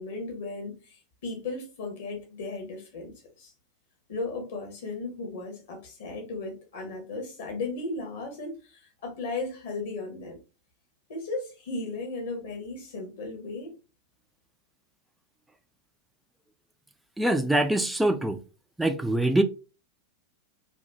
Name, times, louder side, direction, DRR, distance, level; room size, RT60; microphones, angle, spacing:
voice 1, 0.0-3.5 4.1-10.4 11.1-13.7, left 3 dB, 55° left, 1.3 m, -36 dB
voice 2, 17.2-18.4 18.8-19.4, right 1 dB, 5° right, 0.4 m, -24 dB
4.1 x 2.4 x 2.8 m
figure-of-eight pair, 90°, 0 cm